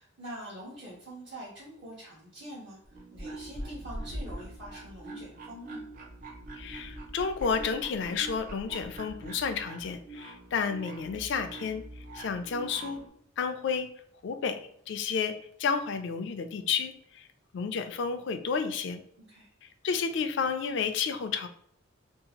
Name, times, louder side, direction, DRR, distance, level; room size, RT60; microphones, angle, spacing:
voice 1, 0.0-5.8 19.2-19.5, right 1 dB, 60° right, -9 dB, 1.0 m, -45 dB
sound 1, 2.8-13.1, right 1 dB, 40° right, 0.5 m, -43 dB
voice 2, 6.5-11.8 12.1-13.0 13.4-13.9 14.2-17.3 17.5-19.0 19.6-21.5, left 6 dB, 60° left, 8 dB, 0.3 m, -31 dB
2.7 x 2.4 x 2.8 m, 0.67 s
head